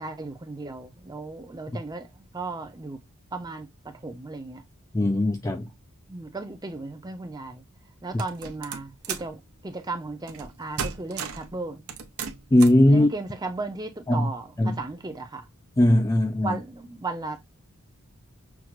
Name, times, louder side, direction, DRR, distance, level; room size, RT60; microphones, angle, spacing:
voice 1, 0.0-3.0 3.3-3.7 4.0-4.6 6.1-7.6 8.0-11.8 12.9-15.5 16.4-17.4, right 3 dB, 20° right, 0.7 m, -35 dB
voice 2, 4.9-5.7 8.1-8.2 12.5-13.1 14.1-14.3 14.6-14.8 15.8-16.6, left 1 dB, 15° left, 0.3 m, -19 dB
sound 1, 8.2-9.3 10.3-10.5 10.8-11.5 11.9-12.8, right 6 dB, 75° right, 0.7 m, -34 dB
6.0 x 2.5 x 2.3 m
head